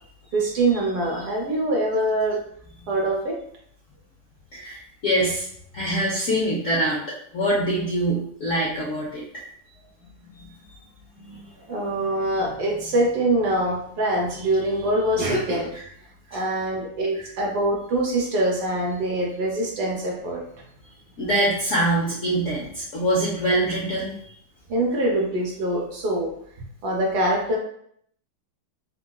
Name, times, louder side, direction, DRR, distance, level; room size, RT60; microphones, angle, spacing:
voice 1, 0.3-2.4 2.9-3.4 10.5-10.6 11.2-11.4 11.7-15.7 16.3-20.4 24.7-26.3 26.8-27.6, right 1 dB, 65° right, -1 dB, 1.0 m, -24 dB
voice 2, 4.5-5.5 5.7-7.0 7.3-9.2 10.7-10.8 16.3-16.4 21.2-24.3, right 1 dB, 65° left, -6 dB, 0.7 m, -24 dB
3.7 x 2.3 x 2.3 m, 0.67 s
omnidirectional pair, 2.2 m